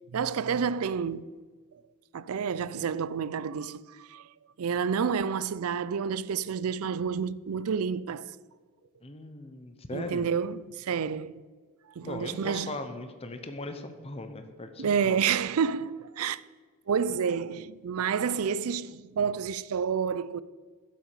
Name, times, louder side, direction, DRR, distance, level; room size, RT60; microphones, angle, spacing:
voice 1, 0.1-1.3 2.1-4.3 4.6-8.3 9.9-11.3 12.0-12.8 14.8-16.4 16.9-20.4, right 6 dB, 75° right, 0.4 m, -29 dB
voice 2, 9.0-10.3 12.0-15.2, left 2 dB, 25° left, 0.8 m, -39 dB
11.0 x 7.5 x 6.7 m
head